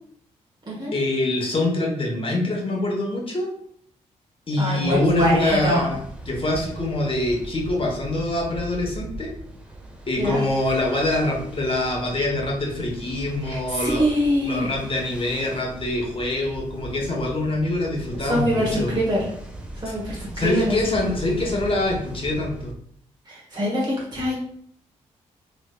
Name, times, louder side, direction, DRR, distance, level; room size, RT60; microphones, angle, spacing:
voice 1, 0.9-3.5 4.5-6.0 6.3-9.3 10.1-14.0 14.4-18.9 20.4-22.7, left 2 dB, 35° left, -1 dB, 1.1 m, -24 dB
voice 2, 4.6-5.9 10.2-10.4 13.4-14.7 18.2-19.2 19.7-20.8 23.3-24.4, equal, 25° right, -5 dB, 1.2 m, -24 dB
Ocean, 4.8-22.7, right 1 dB, 5° right, 0.9 m, -38 dB
3.1 x 3.1 x 2.3 m, 0.66 s
hypercardioid pair, 40°, 16 cm